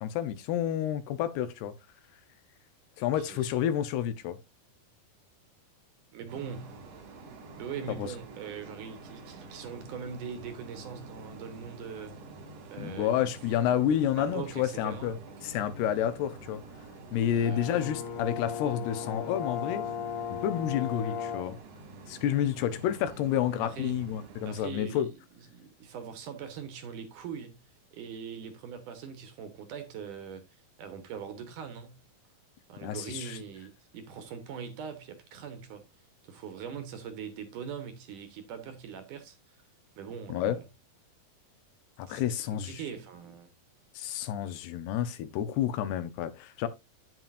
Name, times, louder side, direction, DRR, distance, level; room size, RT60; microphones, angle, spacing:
voice 1, 0.0-1.7 3.0-4.4 8.0-8.1 12.8-15.2 15.4-16.6 17.1-19.9 20.3-21.6 22.1-25.1 32.8-33.4 40.3-40.6 42.0-42.8 44.0-46.7, left 10 dB, 90° left, 3.0 m, -30 dB
voice 2, 3.0-3.5 6.1-6.8 7.6-12.1 12.7-13.7 14.2-15.1 15.4-15.5 17.4-17.8 23.6-24.0 24.4-27.6 27.9-32.0 32.7-35.9 36.2-39.4 40.0-40.7 42.1-43.5, right 7 dB, 65° right, 2.4 m, -42 dB
sound 1, 6.3-24.6, right 2 dB, 85° right, 4.2 m, -48 dB
Brass instrument, 17.4-21.6, left 7 dB, 60° left, 2.9 m, -36 dB
9.2 x 9.1 x 2.6 m
omnidirectional pair, 4.5 m